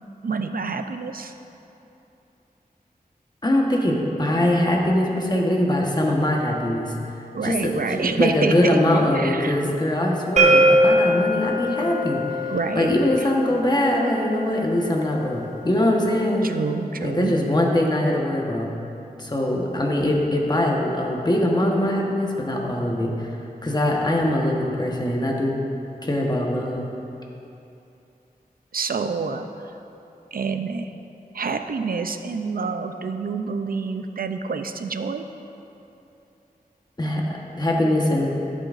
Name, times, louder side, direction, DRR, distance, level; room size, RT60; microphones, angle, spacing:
voice 1, 0.2-1.3 7.3-9.6 12.5-12.9 16.4-17.3 28.7-29.8 30.3-30.9 31.3-35.2, right 4 dB, 65° right, 7 dB, 0.5 m, -27 dB
voice 2, 3.4-6.9 7.4-12.2 12.7-16.5 17.0-18.7 19.2-23.3 23.6-25.6 26.0-26.9 37.0-38.3, left 1 dB, 25° left, -1 dB, 1.2 m, -22 dB
sound 1, 10.4-16.2, right 1 dB, 50° right, 0.9 m, -23 dB
13.5 x 7.6 x 2.5 m, 2.9 s
wide cardioid pair, 75°, 16 cm